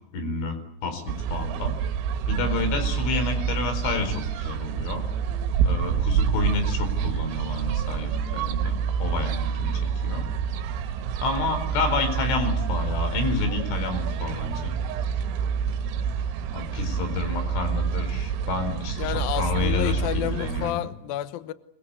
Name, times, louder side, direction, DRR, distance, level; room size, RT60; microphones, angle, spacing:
voice 1, 0.1-0.6 0.8-1.8 2.3-5.0 5.6-10.3 11.2-14.7 16.5-20.9, left 4 dB, 65° left, 8 dB, 6.6 m, -29 dB
sound 1, 1.1-20.7, right 7 dB, 85° right, 4.0 m, -27 dB
voice 2, 19.0-21.5, left 14 dB, 85° left, 12 dB, 2.0 m, -30 dB
25.0 x 22.5 x 8.2 m, 0.76 s
omnidirectional pair, 5.9 m